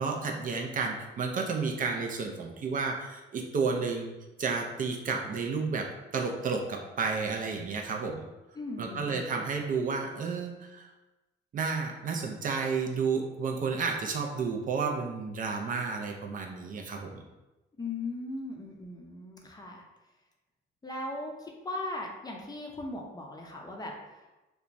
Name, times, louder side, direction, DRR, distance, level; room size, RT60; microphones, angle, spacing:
voice 1, 0.0-4.1 4.4-5.9 6.1-8.2 8.8-10.9 11.5-17.2, right 5 dB, 45° right, 1 dB, 0.4 m, -31 dB
voice 2, 8.6-9.4 17.8-19.8 20.8-24.2, left 2 dB, 20° left, 0 dB, 0.5 m, -38 dB
2.9 x 2.2 x 2.5 m, 1.1 s
cardioid pair, 90°, 20 cm